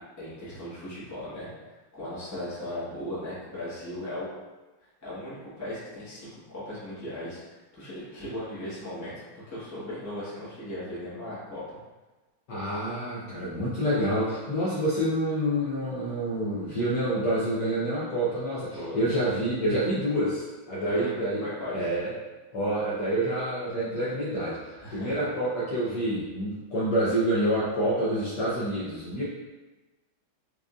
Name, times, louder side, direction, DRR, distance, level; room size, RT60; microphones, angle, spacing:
voice 1, 0.2-1.5 1.9-4.3 5.0-11.6 18.7-19.1 20.8-21.1 21.4-21.9 24.8-25.2, left 1 dB, 10° left, -11 dB, 0.8 m, -37 dB
voice 2, 12.5-21.4 21.7-22.1 22.5-24.6 24.9-29.2, right 1 dB, 65° left, -8 dB, 1.1 m, -27 dB
4.8 x 2.6 x 2.4 m, 1.2 s
omnidirectional pair, 2.3 m